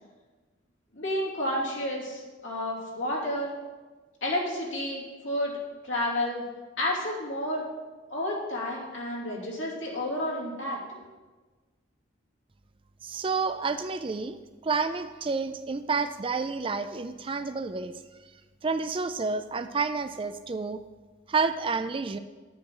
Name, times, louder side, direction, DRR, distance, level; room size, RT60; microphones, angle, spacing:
voice 1, 0.9-3.5 4.2-5.6 5.8-6.4 6.8-7.7 8.1-10.9, left 1 dB, 70° left, -4 dB, 2.9 m, -31 dB
voice 2, 13.0-17.9 18.6-20.8 21.3-22.2, right 4 dB, 25° right, 10 dB, 0.4 m, -29 dB
10.5 x 8.9 x 3.8 m, 1.3 s
head